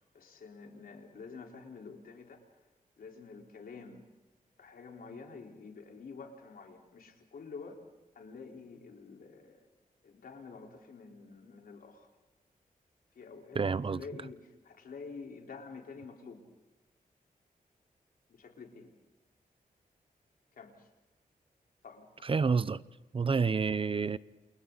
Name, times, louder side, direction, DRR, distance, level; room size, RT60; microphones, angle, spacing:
voice 1, 0.1-2.5 3.0-4.1 4.6-7.8 8.1-9.7 10.0-12.1 13.1-16.4 18.3-18.9 20.6-20.9 21.8-22.3, left 4 dB, 80° left, 4.2 m, -48 dB
voice 2, 13.5-14.0 22.2-22.8 23.1-24.2, right 5 dB, 35° right, 0.7 m, -29 dB
28.5 x 28.5 x 4.0 m
wide cardioid pair, 120°, 15 cm